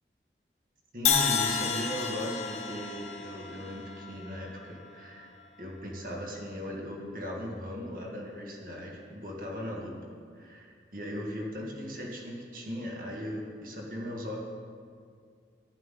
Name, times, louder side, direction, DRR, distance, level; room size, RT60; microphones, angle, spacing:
voice 1, 0.9-5.3 5.6-10.0 10.3-14.4, equal, 50° right, -1 dB, 1.9 m, -38 dB
Crash cymbal, 1.1-5.1, left 6 dB, 40° left, 0.9 m, -31 dB
14.0 x 11.0 x 3.8 m, 2.2 s
head